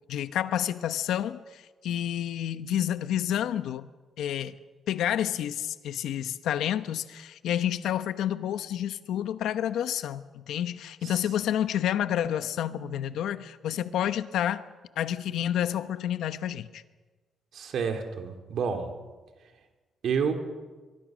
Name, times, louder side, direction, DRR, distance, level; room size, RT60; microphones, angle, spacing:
voice 1, 0.1-3.9 4.2-4.6 4.9-14.6 15.0-16.8, left 10 dB, 80° left, 1.0 m, -29 dB
voice 2, 17.5-18.9 20.0-20.3, right 6 dB, 60° right, 3.0 m, -29 dB
24.0 x 22.5 x 6.4 m
cardioid pair, 160°, 0 cm